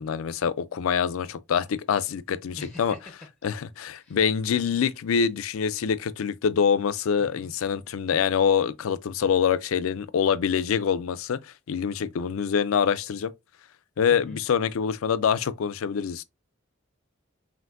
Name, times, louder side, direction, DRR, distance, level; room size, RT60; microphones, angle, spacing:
voice 1, 0.0-3.0 3.4-11.4 11.7-13.3 14.0-16.2, left 7 dB, 90° left, 0.4 m, -25 dB
voice 2, 2.6-3.0 4.0-4.2 7.2-7.5 14.1-14.4, left 2 dB, 5° left, 0.7 m, -43 dB
5.7 x 2.6 x 2.5 m
head